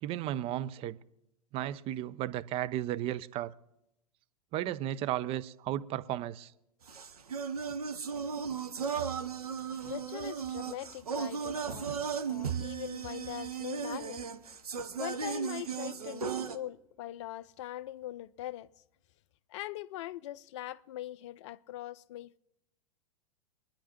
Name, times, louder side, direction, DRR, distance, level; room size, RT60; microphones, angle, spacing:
voice 1, 0.0-1.0 1.5-3.5 4.5-6.5, right 12 dB, 30° right, 0.5 m, -34 dB
sound 1, 6.9-16.6, right 6 dB, 75° right, 1.0 m, -36 dB
voice 2, 9.8-14.3 15.0-18.7 19.5-22.4, left 14 dB, 50° left, 0.5 m, -42 dB
24.5 x 10.0 x 3.0 m
figure-of-eight pair, 95°, 20 cm